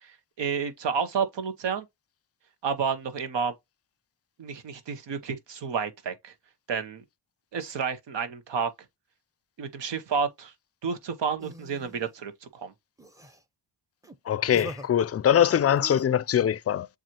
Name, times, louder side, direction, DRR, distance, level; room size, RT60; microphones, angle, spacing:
voice 1, 0.0-1.8 2.6-3.5 4.4-6.3 6.7-7.0 7.5-8.7 9.6-10.5 10.8-12.7, right 6 dB, 85° right, 0.9 m, -30 dB
sound 1, 11.4-12.1 13.0-13.4 14.0-14.2 14.5-14.9 15.8-16.0, right 1 dB, 10° right, 0.7 m, -42 dB
voice 2, 14.3-16.9, left 9 dB, 35° left, 0.4 m, -22 dB
7.3 x 2.4 x 2.8 m
cardioid pair, 55°, 42 cm